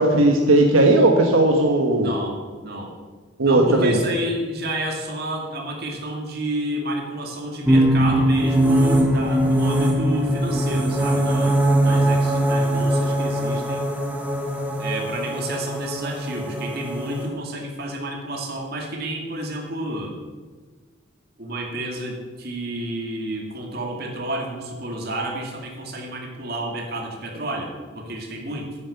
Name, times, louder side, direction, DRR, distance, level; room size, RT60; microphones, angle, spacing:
voice 1, 0.0-2.1 3.4-4.0, right 2 dB, 85° right, 2 dB, 1.3 m, -17 dB
voice 2, 1.9-2.9 3.4-13.9 14.8-20.1 21.4-27.7 27.9-28.8, right 1 dB, 50° right, 0 dB, 2.4 m, -30 dB
sound 1, 7.6-17.3, right 1 dB, 10° right, 1.3 m, -21 dB
10.5 x 8.6 x 7.0 m, 1.4 s
head